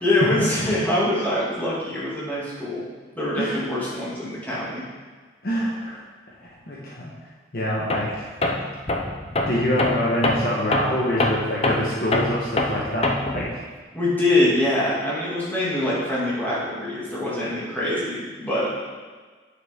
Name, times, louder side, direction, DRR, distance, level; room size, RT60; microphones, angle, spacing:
voice 1, 0.0-2.8 3.2-4.8 13.9-18.7, left 1 dB, 10° left, -9 dB, 2.4 m, -24 dB
voice 2, 5.4-6.0 6.4-7.1 7.5-8.1 9.5-13.6, equal, 55° left, -5 dB, 1.3 m, -25 dB
Tools, 7.9-8.1 8.4-13.5, left 2 dB, 35° left, 0.6 m, -24 dB
9.0 x 6.3 x 3.7 m, 1.5 s
head